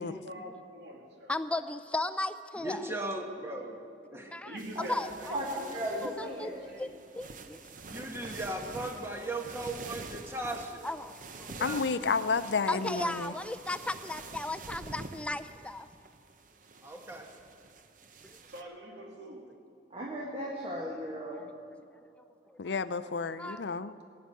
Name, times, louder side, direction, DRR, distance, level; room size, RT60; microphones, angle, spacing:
voice 1, 0.0-1.3 4.4-7.1 18.1-18.2 18.5-19.5, right 1 dB, 80° right, 1 dB, 2.4 m, -45 dB
voice 2, 1.3-2.9 4.3-5.3 6.0-6.5 6.8-6.9 7.2-7.6 10.8-11.5 12.7-15.9 21.4-21.5 22.5-22.6 23.4-23.6, left 2 dB, 5° left, 11 dB, 0.4 m, -36 dB
voice 3, 2.6-4.4 7.9-10.9 11.5-12.0 16.8-17.3, right 1 dB, 15° right, 3 dB, 1.4 m, -37 dB
sound 1, 4.6-18.6, right 3 dB, 50° right, 0.8 m, -47 dB
voice 4, 5.7-6.6 19.9-21.5, equal, 30° right, -2 dB, 1.7 m, -36 dB
voice 5, 11.6-13.3 22.6-23.9, left 5 dB, 75° left, 14 dB, 0.5 m, -31 dB
17.5 x 9.4 x 7.7 m, 2.5 s
head